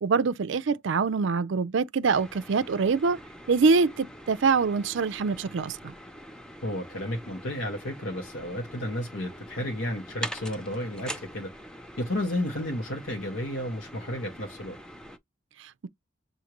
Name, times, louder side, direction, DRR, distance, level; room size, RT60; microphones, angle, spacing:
voice 1, 0.0-3.2 3.5-5.9, right 4 dB, 60° right, 0.4 m, -24 dB
sound 1, 2.1-15.2, equal, 5° left, 0.5 m, -44 dB
voice 2, 6.6-11.5 12.0-14.8, left 1 dB, 70° left, 1.2 m, -32 dB
6.4 x 2.6 x 2.9 m
head